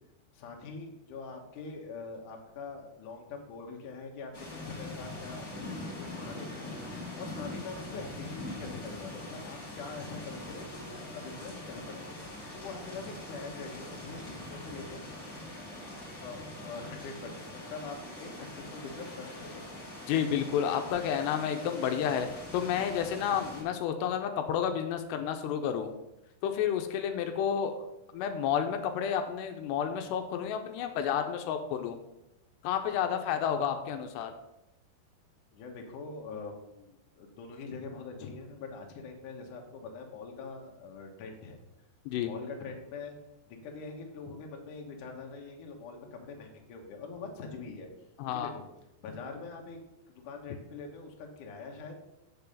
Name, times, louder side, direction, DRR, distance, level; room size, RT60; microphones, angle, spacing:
voice 1, 0.3-12.1 12.5-15.0 16.2-19.9 35.5-41.6 42.2-43.1 43.5-47.9 48.2-48.6 49.0-49.8 50.1-52.0, left 4 dB, 65° left, 2 dB, 2.2 m, -44 dB
sound 1, 4.3-23.6, left 1 dB, 30° left, 1.2 m, -43 dB
voice 2, 20.1-22.3 22.5-25.9 26.4-27.7 28.1-32.0 32.6-34.3 42.1-42.3 48.2-48.5, left 8 dB, 85° left, 6 dB, 2.8 m, -30 dB
6.9 x 6.6 x 5.4 m, 0.91 s
omnidirectional pair, 4.9 m